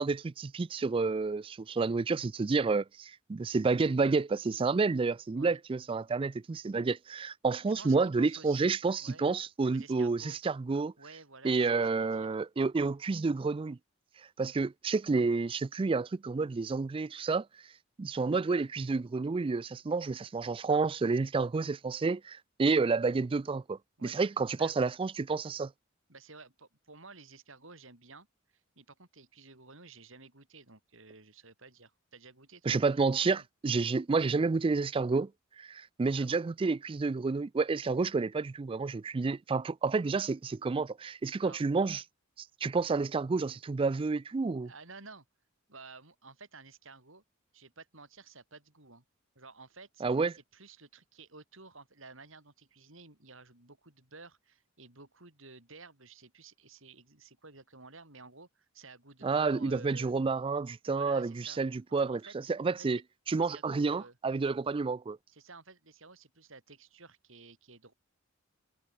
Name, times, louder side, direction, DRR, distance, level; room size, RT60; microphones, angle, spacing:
voice 1, 0.0-10.9 11.4-13.8 14.4-17.5 18.0-25.7 32.7-35.3 35.6-42.0 42.4-44.7 50.0-50.3 59.2-62.2 62.5-63.0 63.3-65.2, right 4 dB, 25° right, 0.3 m, -30 dB
voice 2, 7.8-9.3 9.7-10.4 11.0-12.4 24.0-24.3 24.6-24.7 26.1-28.3 28.7-33.4 36.2-36.4 41.4-41.6 44.6-45.2 45.7-47.2 47.5-49.0 49.3-50.0 50.3-60.1 60.9-61.6 62.1-62.3 62.9-63.0 63.4-64.2 65.3-67.9, right 3 dB, 65° right, 4.9 m, -53 dB
head